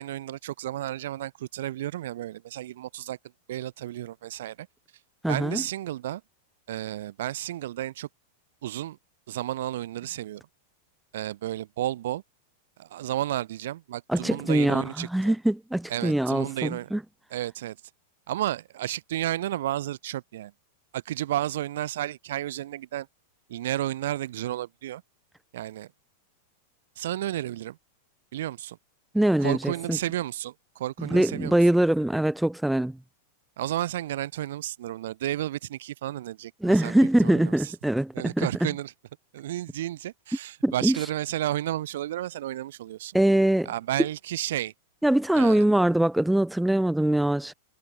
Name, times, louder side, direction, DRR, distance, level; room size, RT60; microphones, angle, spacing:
voice 1, 0.0-3.2 3.5-4.7 5.3-6.2 6.7-8.1 8.6-9.0 9.3-10.4 11.1-12.2 12.8-15.3 15.9-16.9 17.3-17.8 18.3-20.5 20.9-23.1 23.5-25.0 25.5-25.9 27.0-27.8 28.3-28.8 29.4-31.6 33.6-37.7 38.1-38.9 39.3-43.2 43.7-44.7 45.4-45.6, right 13 dB, 70° right, 5.4 m, -32 dB
voice 2, 5.2-5.6 14.1-17.0 29.1-30.0 31.0-33.0 36.6-38.7 40.6-41.0 43.1-43.7 45.0-47.5, right 1 dB, 5° right, 5.5 m, -23 dB
hypercardioid pair, 120°, 0 cm